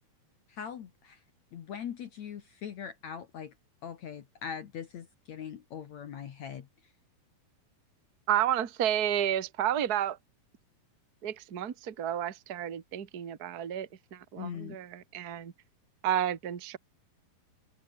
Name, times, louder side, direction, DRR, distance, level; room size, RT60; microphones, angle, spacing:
voice 1, 0.5-1.2 1.5-3.5 3.8-6.7 14.4-14.8, left 8 dB, 60° left, 2.6 m, -41 dB
voice 2, 8.3-10.2 11.2-15.5 16.0-16.8, right 11 dB, 40° right, 1.5 m, -31 dB
omnidirectional pair, 4.1 m